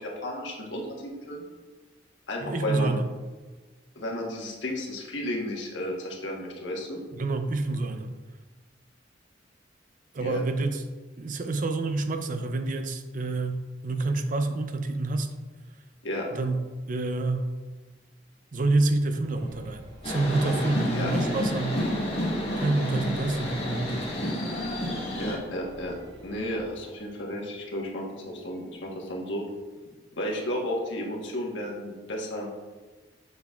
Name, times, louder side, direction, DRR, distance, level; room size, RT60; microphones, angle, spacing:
voice 1, 0.0-1.4 2.3-3.0 3.9-7.0 10.2-10.4 16.0-16.3 20.9-21.1 25.2-26.0 26.2-29.4 30.2-32.5, left 1 dB, 85° left, -1 dB, 1.3 m, -33 dB
voice 2, 2.4-3.1 7.1-8.1 10.1-10.8 11.2-15.3 16.3-17.5 18.5-21.8 22.6-24.3, right 2 dB, 45° right, 8 dB, 0.5 m, -28 dB
sound 1, 19.2-26.7, equal, 60° right, 1.3 m, -48 dB
sound 2, 20.0-25.4, left 1 dB, 35° left, 2.0 m, -30 dB
6.9 x 6.6 x 2.4 m, 1.3 s
head